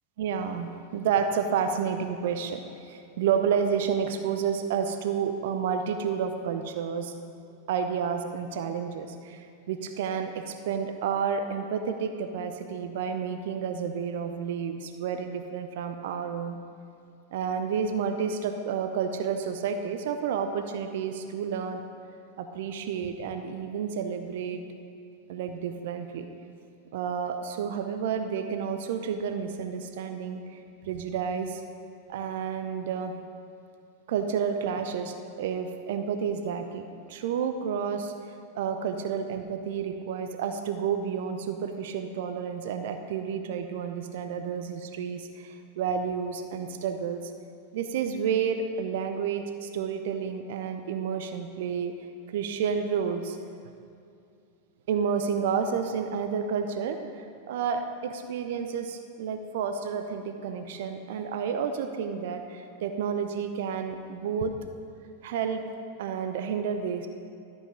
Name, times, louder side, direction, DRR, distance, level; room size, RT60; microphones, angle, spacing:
voice 1, 0.2-7.1 7.7-16.6 17.3-21.8 22.4-24.6 25.3-26.3 26.9-31.6 32.1-33.1 34.1-47.3 47.7-51.9 52.3-53.4 54.9-64.5 65.2-65.6 66.0-67.1, right 7 dB, 55° right, 7 dB, 0.5 m, -30 dB
13.0 x 5.4 x 5.1 m, 2.5 s
figure-of-eight pair, 90°, 0 cm